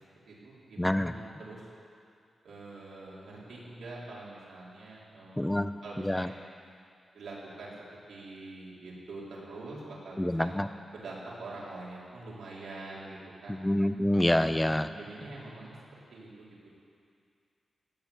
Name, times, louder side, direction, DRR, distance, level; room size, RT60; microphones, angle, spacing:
voice 1, 0.0-1.6 2.4-6.4 7.1-7.7 8.1-10.5 10.9-13.6 14.5-16.7, right 2 dB, 85° right, -6 dB, 4.5 m, -45 dB
voice 2, 0.8-1.1 5.4-5.7 6.0-6.3 10.2-10.7 13.6-14.9, left 1 dB, 5° left, 11 dB, 0.4 m, -26 dB
18.0 x 8.7 x 8.9 m, 2.3 s
wide cardioid pair, 145°, 0 cm